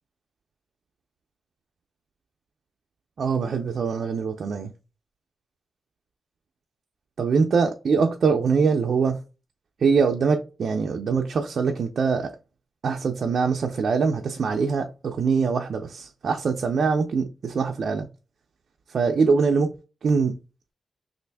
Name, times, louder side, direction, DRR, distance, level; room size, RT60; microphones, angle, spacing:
voice 1, 3.2-4.7 7.2-9.2 9.8-12.3 12.8-18.1 18.9-19.7 20.0-20.3, right 5 dB, 55° right, 0.4 m, -23 dB
3.3 x 2.5 x 3.3 m
wide cardioid pair, 150°, 0 cm